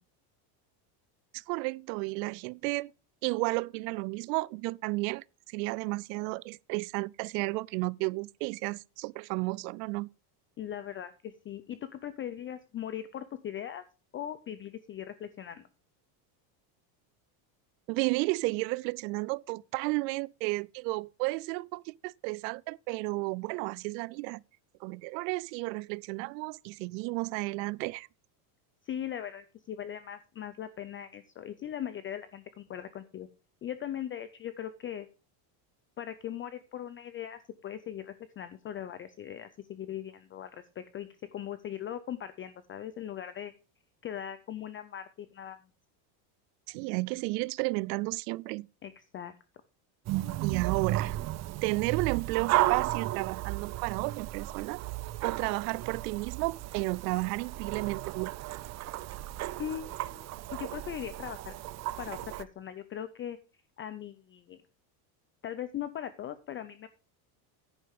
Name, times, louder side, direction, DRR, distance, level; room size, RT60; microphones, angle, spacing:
voice 1, 1.3-2.9 3.2-10.1 17.9-24.4 24.8-28.1 46.7-48.7 50.4-51.2 51.6-54.8 55.2-58.3, right 25 dB, 85° right, 0.5 m, -32 dB
voice 2, 10.6-13.8 14.1-15.7 28.8-33.3 33.6-35.1 36.0-43.5 44.0-45.6 48.8-49.3 59.6-61.5 62.0-63.4 63.8-64.6 65.4-66.9, left 10 dB, 25° left, 0.5 m, -39 dB
sound 1, 50.1-62.4, right 15 dB, 35° right, 0.5 m, -34 dB
10.0 x 9.8 x 3.6 m
cardioid pair, 140°, 49 cm